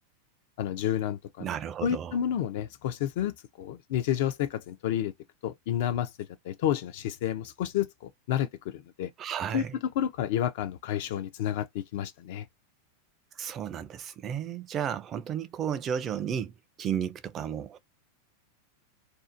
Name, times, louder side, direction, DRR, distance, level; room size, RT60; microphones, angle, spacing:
voice 1, 0.6-1.5 1.8-5.1 5.4-6.1 6.4-9.1 9.5-9.7 10.0-12.5, left 10 dB, 60° left, 0.4 m, -30 dB
voice 2, 1.4-2.2 9.2-9.7 13.4-17.8, right 8 dB, 25° right, 0.3 m, -33 dB
2.6 x 2.0 x 2.5 m
supercardioid pair, 150°, 0 cm